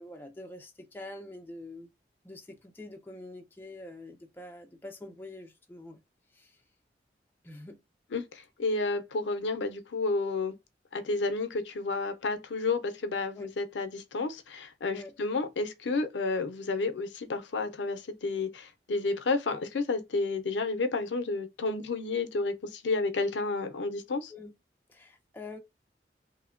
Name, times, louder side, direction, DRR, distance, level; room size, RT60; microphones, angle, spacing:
voice 1, 0.0-1.9 2.2-6.0 6.3-6.6 7.4-7.8 13.3-13.5 14.9-15.1 24.3-24.5 24.9-25.6, left 2 dB, 10° left, 0.4 m, -45 dB
voice 2, 8.1-10.5 10.9-24.3, left 3 dB, 90° left, 0.5 m, -31 dB
3.0 x 2.1 x 2.4 m
head